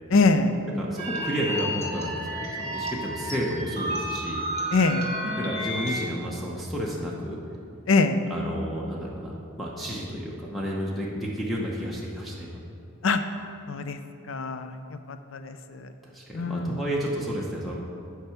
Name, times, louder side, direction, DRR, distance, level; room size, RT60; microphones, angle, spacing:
voice 1, 0.1-0.5 4.7-5.1 7.9-8.2 13.0-13.2 13.7-14.0 14.3-14.7 15.3-15.9 16.3-16.7, left 3 dB, 65° left, 9 dB, 0.5 m, -23 dB
voice 2, 0.8-4.4 5.4-7.4 8.3-12.6 16.0-17.8, equal, ahead, -5 dB, 0.8 m, -31 dB
sound 1, 1.0-6.0, equal, 35° right, 1.9 m, -32 dB
10.0 x 4.7 x 5.8 m, 2.5 s
head